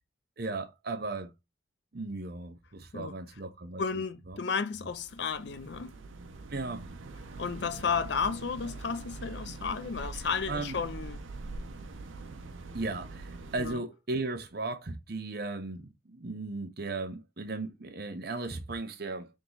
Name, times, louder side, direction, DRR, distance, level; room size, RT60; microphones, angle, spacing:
voice 1, 0.4-1.3 1.9-3.8 4.3-4.4 6.5-6.9 10.5-10.7 12.7-19.3, right 3 dB, 50° right, 0.8 m, -36 dB
voice 2, 3.8-5.9 7.4-11.2 13.6-13.8, left 5 dB, 60° left, 0.5 m, -33 dB
sound 1, 4.8-13.7, right 3 dB, 85° right, 0.6 m, -43 dB
3.7 x 3.0 x 3.9 m
head